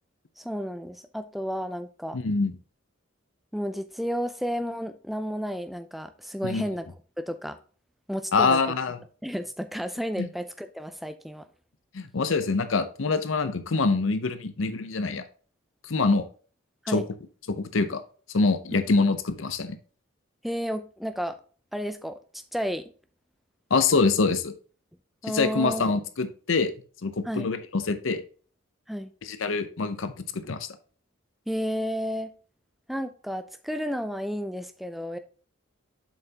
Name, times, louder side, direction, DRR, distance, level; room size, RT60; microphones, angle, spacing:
voice 1, 0.4-2.2 3.5-6.9 7.2-7.6 8.1-8.6 9.2-11.5 16.8-17.0 18.7-19.1 20.4-21.4 21.7-22.9 25.2-25.9 27.2-27.5 28.9-29.1 31.5-32.3 32.9-35.2, equal, ahead, 9 dB, 0.4 m, -32 dB
voice 2, 2.1-2.5 6.4-6.6 8.3-9.0 10.2-10.3 11.9-15.2 15.8-16.2 16.9-17.0 17.5-18.0 18.3-19.8 23.7-24.5 25.2-26.7 27.0-28.2 29.2-30.7, left 4 dB, 70° left, 11 dB, 0.7 m, -25 dB
7.3 x 5.6 x 2.8 m, 0.40 s
head